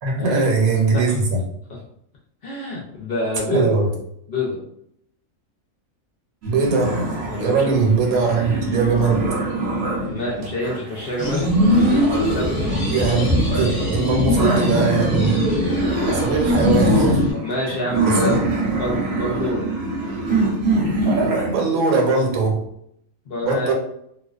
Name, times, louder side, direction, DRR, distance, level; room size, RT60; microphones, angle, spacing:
voice 1, 0.0-1.4 3.5-3.9 6.5-7.0 7.4-9.2 12.8-15.5 16.1-17.3 17.7-17.8 18.1-18.4 21.0-22.6 23.4-23.7, right 4 dB, 85° right, 0 dB, 1.1 m, -21 dB
voice 2, 2.4-3.7 4.3-4.6 7.3-7.7 10.1-11.5 12.1-12.8 17.3-18.4 18.7-19.7 23.3-23.7, left 1 dB, 60° left, -3 dB, 0.6 m, -27 dB
sound 1, 6.4-21.6, right 2 dB, 60° right, 0.8 m, -25 dB
sound 2, 11.2-17.3, equal, 10° left, 0.7 m, -20 dB
2.4 x 2.2 x 2.3 m, 0.72 s
omnidirectional pair, 1.4 m